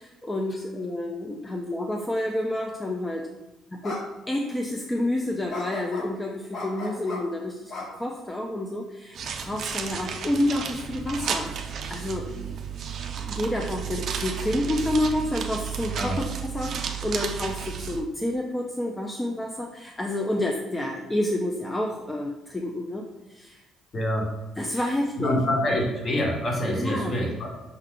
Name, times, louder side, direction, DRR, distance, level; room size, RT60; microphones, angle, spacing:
voice 1, 0.2-3.3 3.7-11.5 11.9-12.6 13.2-23.0 23.3-23.6 24.6-25.3 25.7-25.8 26.7-27.2, left 1 dB, 15° left, 1 dB, 0.4 m, -29 dB
sound 1, 3.1-3.2 3.8-4.0 4.4-4.5 5.5-6.1 6.5-7.2 7.7-8.5, left 2 dB, 60° left, 1.2 m, -36 dB
sound 2, 9.1-18.0, right 7 dB, 60° right, 0.4 m, -33 dB
voice 2, 23.9-24.3 24.7-24.9 25.2-27.5, left 1 dB, 35° left, -1 dB, 1.1 m, -26 dB
5.5 x 2.2 x 3.6 m, 1.1 s
cardioid pair, 110°, 0 cm